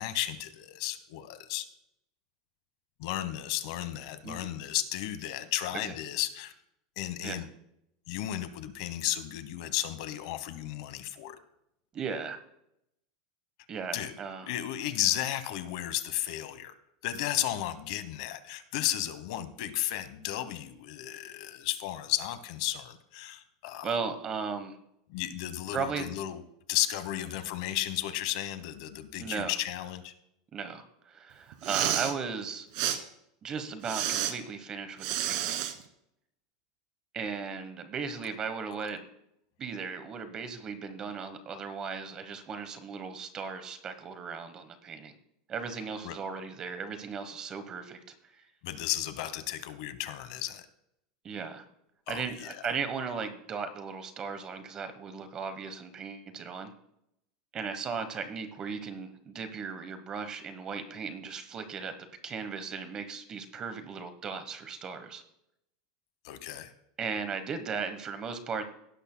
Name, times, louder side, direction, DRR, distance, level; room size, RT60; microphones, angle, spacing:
voice 1, 0.0-1.7 3.0-6.5 7.0-7.5 8.1-11.4 13.9-14.1 14.4-16.7 17.0-23.9 25.1-26.4 26.7-30.1 38.7-38.9 46.0-46.2 48.6-50.6 52.1-52.5 66.2-66.7, left 13 dB, 55° left, 12 dB, 1.0 m, -34 dB
voice 2, 11.9-12.4 13.7-14.5 23.8-24.8 25.7-26.1 29.2-29.6 30.5-32.7 33.4-35.6 37.1-39.1 39.6-45.1 45.5-48.0 48.3-48.5 51.2-51.6 52.1-56.7 57.5-65.2 67.0-68.6, right 5 dB, 20° right, 10 dB, 1.1 m, -37 dB
Respiratory sounds, 31.5-32.1 32.7-33.0 33.8-34.3 35.0-35.7, right 11 dB, 50° right, 1.3 m, -30 dB
17.5 x 11.5 x 2.2 m, 0.77 s
supercardioid pair, 165°, 3 cm